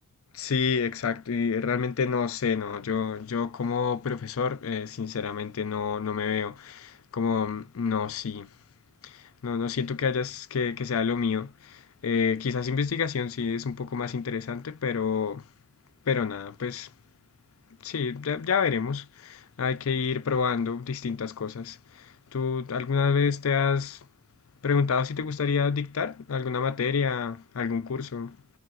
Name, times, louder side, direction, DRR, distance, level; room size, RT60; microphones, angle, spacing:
voice 1, 0.3-8.5 9.0-15.4 16.1-16.9 17.8-24.0 24.6-28.4, left 6 dB, 75° left, 0.5 m, -28 dB
4.6 x 2.5 x 2.5 m
head